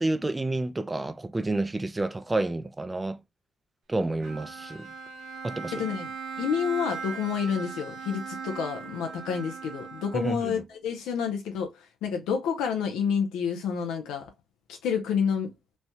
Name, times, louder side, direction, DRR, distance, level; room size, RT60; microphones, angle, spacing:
voice 1, 0.0-3.2 3.9-4.9 5.4-5.7 10.1-10.6, right 2 dB, 15° right, 0.4 m, -29 dB
Bowed string instrument, 4.2-10.6, right 5 dB, 65° right, 0.9 m, -39 dB
voice 2, 5.7-6.1 6.4-14.3 14.7-15.5, left 7 dB, 90° left, 0.5 m, -29 dB
3.2 x 2.2 x 2.6 m
cardioid pair, 90°, 0 cm